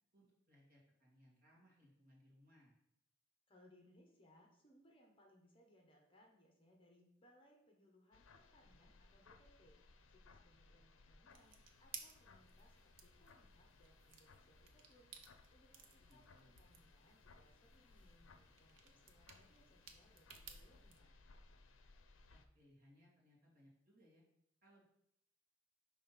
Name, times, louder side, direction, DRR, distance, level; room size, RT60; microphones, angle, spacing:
voice 1, 0.1-2.7 16.0-16.6 22.3-24.2 24.6-24.8, equal, 45° right, -4 dB, 2.0 m, -68 dB
voice 2, 3.5-9.8 10.1-15.1 15.5-21.1, left 1 dB, 25° left, 0 dB, 1.0 m, -70 dB
sound 1, 8.1-22.5, left 3 dB, 70° left, 0.6 m, -65 dB
sound 2, 11.3-21.0, right 6 dB, 75° right, 0.8 m, -59 dB
5.5 x 3.5 x 5.7 m, 0.76 s
head